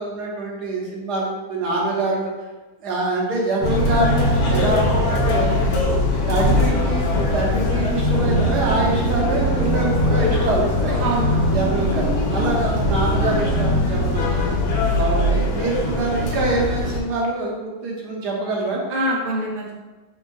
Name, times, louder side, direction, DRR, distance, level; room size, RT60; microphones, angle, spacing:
voice 1, 0.0-2.3 2.8-5.5 6.3-11.0 11.5-14.6 14.9-18.8, right 2 dB, 65° right, -3 dB, 1.5 m, -25 dB
sound 1, 3.6-17.0, left 1 dB, 75° left, 1.4 m, -21 dB
voice 2, 11.0-11.6 12.4-12.5 18.9-19.7, right 1 dB, 45° right, -3 dB, 0.5 m, -25 dB
5.4 x 3.7 x 2.3 m, 1.2 s
omnidirectional pair, 1.9 m